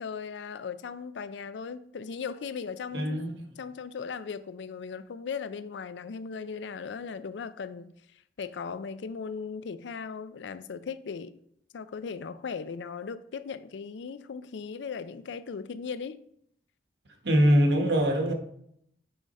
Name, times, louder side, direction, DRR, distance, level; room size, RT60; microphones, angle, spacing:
voice 1, 0.0-3.2 3.6-7.9 8.4-11.4 11.7-16.2, left 5 dB, 90° left, 0.4 m, -38 dB
voice 2, 2.9-3.5 17.2-18.3, equal, 75° right, 1.2 m, -23 dB
7.8 x 4.8 x 4.1 m
head